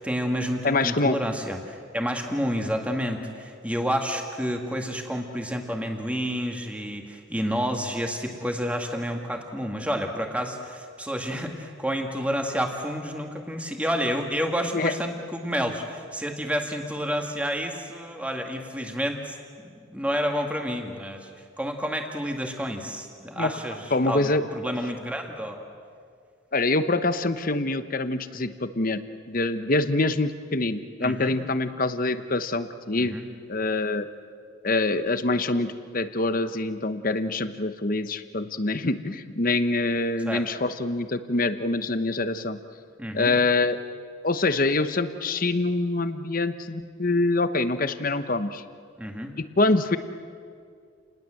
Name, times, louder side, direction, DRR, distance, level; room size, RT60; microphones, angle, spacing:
voice 1, 0.0-21.3 21.6-25.7 31.0-31.4 33.0-33.3 40.3-40.5 43.0-43.3 49.0-49.3, equal, 5° right, 3 dB, 2.0 m, -30 dB
voice 2, 0.6-1.2 14.7-14.9 23.4-23.5 23.9-24.4 26.5-29.0 29.3-33.2 33.5-34.1 34.6-42.6 43.1-43.8 44.2-48.6 49.4-50.0, left 2 dB, 45° left, 11 dB, 1.0 m, -25 dB
29.5 x 20.0 x 7.8 m, 2.2 s
head